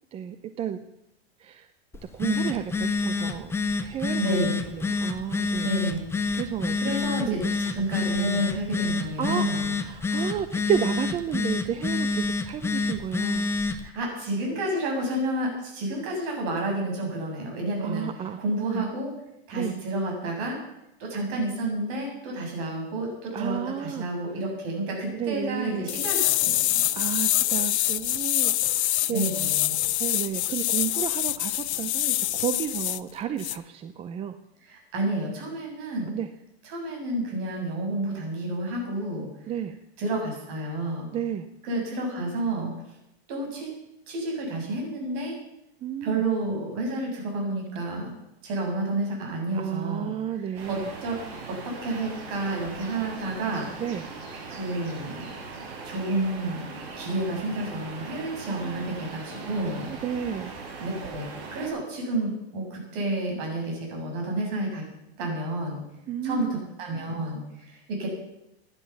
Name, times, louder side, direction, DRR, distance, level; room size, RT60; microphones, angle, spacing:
voice 1, 0.1-0.8 1.4-1.7 2.1-5.7 6.3-6.9 7.3-7.6 8.0-8.5 9.2-13.5 17.8-18.4 18.7-18.8 19.5-19.7 21.2-21.4 23.3-24.1 25.1-25.9 26.9-29.3 30.0-34.4 36.1-36.3 39.5-39.8 41.1-41.5 45.8-46.2 49.5-50.9 53.8-54.1 58.1-58.9 59.9-60.5 66.1-66.6, right 9 dB, 20° right, 10 dB, 0.5 m, -32 dB
Telephone, 1.9-13.9, left 4 dB, 10° left, 0.8 m, -28 dB
voice 2, 4.2-4.7 5.6-6.0 6.8-9.7 13.8-18.1 18.4-19.1 19.5-20.6 21.0-26.9 29.1-29.8 34.7-36.1 36.6-39.3 40.0-41.1 41.6-42.7 43.3-43.8 44.1-45.4 46.0-48.1 48.4-50.1 50.7-51.2 51.5-53.7 54.5-55.2 55.8-59.9 60.8-64.8 65.2-65.8 66.2-66.5 66.8-68.1, right 1 dB, 45° right, 0 dB, 7.4 m, -30 dB
sound 1, 25.9-33.0 33.4-33.6, left 14 dB, 85° left, 0.7 m, -25 dB
sound 2, 50.5-61.7, right 4 dB, 65° right, 6.0 m, -40 dB
16.0 x 10.5 x 7.2 m, 0.86 s
supercardioid pair, 150°, 33 cm